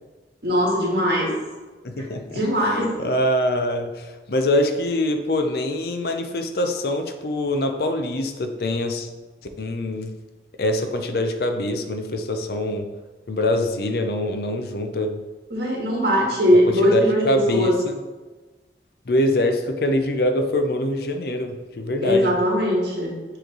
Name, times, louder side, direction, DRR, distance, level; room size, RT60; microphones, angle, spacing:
voice 1, 0.4-1.3 2.3-2.9 15.5-17.7 22.0-23.1, equal, 65° right, -2 dB, 1.7 m, -20 dB
voice 2, 1.8-2.4 3.0-9.1 9.6-10.1 10.6-12.9 13.3-15.2 16.7-18.0 19.1-22.4, left 1 dB, 60° left, 6 dB, 0.5 m, -24 dB
7.7 x 3.2 x 3.8 m, 1.3 s
head